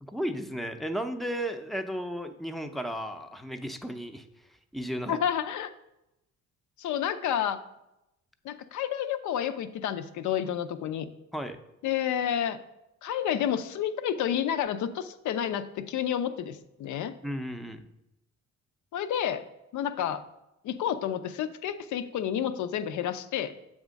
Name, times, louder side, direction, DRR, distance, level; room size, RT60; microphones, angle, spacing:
voice 1, 0.0-4.3 4.7-5.2 11.3-11.6 17.2-17.9, equal, ahead, 7 dB, 0.5 m, -34 dB
voice 2, 5.1-5.7 6.8-7.6 8.4-11.1 11.8-12.6 13.0-17.1 18.9-19.4 19.7-20.2 20.6-23.5, left 9 dB, 75° left, 11 dB, 0.6 m, -30 dB
7.3 x 3.6 x 5.1 m, 0.88 s
cardioid pair, 90°, 30 cm